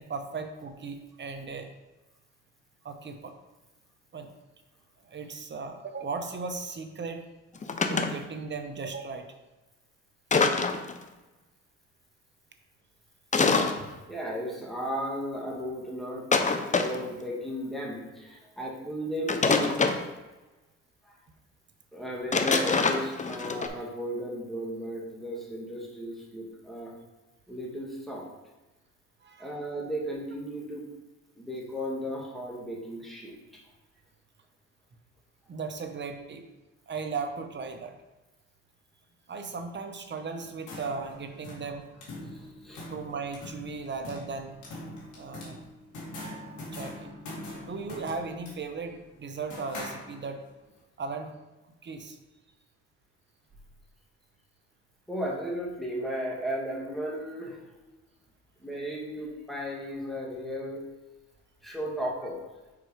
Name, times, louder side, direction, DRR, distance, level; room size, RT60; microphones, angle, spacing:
voice 1, 0.0-1.7 2.8-3.3 4.1-4.3 5.0-7.3 7.9-9.3 29.2-29.5 35.5-36.5 36.9-37.9 39.3-41.9 42.9-44.5 45.2-45.7 46.7-47.1 47.6-50.4 51.0-51.3 51.8-52.2, right 4 dB, 35° right, 6 dB, 0.8 m, -37 dB
sound 1, 7.6-8.1 10.3-11.0 13.3-13.8 16.3-17.1 19.3-20.0 22.3-23.7, left 4 dB, 25° left, 0.6 m, -25 dB
voice 2, 13.8-19.7 21.1-21.2 21.9-26.9 27.5-28.3 29.4-30.9 31.4-33.4 42.3-42.8 55.1-57.6 58.6-60.8 61.6-62.4, equal, ahead, -3 dB, 1.8 m, -35 dB
sound 2, 40.4-50.5, left 1 dB, 90° left, 2.0 m, -43 dB
4.9 x 4.5 x 4.9 m, 1.1 s
cardioid pair, 90°, 30 cm